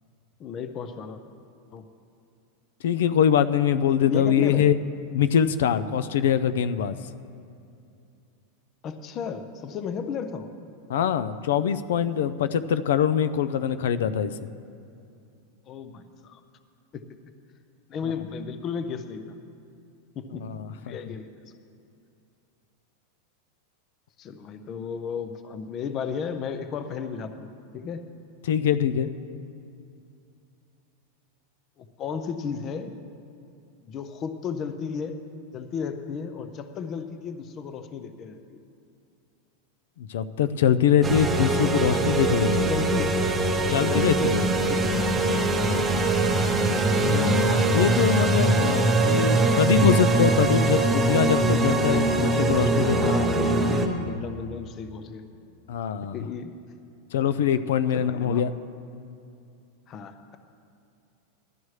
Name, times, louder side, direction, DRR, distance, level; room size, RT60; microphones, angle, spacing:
voice 1, 0.4-1.2 1.7-1.8 4.0-4.7 8.8-10.5 15.7-16.4 16.9-17.0 17.9-19.2 20.2-20.5 20.7-21.3 24.2-27.5 27.7-28.1 31.8-32.9 33.8-35.2 35.5-38.6 42.7-43.1 43.8-45.1 45.6-45.8 53.0-53.7 54.1-55.2 56.1-56.6 57.9-58.4 59.9-60.4, left 6 dB, 25° left, 9 dB, 0.5 m, -34 dB
voice 2, 2.8-4.7 5.1-7.0 10.9-14.3 20.4-21.0 28.4-29.1 40.0-42.7 43.6-44.4 46.9-47.4 47.7-53.2 55.7-56.1 57.1-58.5, left 8 dB, 75° left, 13 dB, 0.4 m, -23 dB
sound 1, 41.0-53.9, right 2 dB, 10° right, 0.8 m, -22 dB
16.0 x 12.0 x 3.2 m, 2.5 s
supercardioid pair, 175°, 0 cm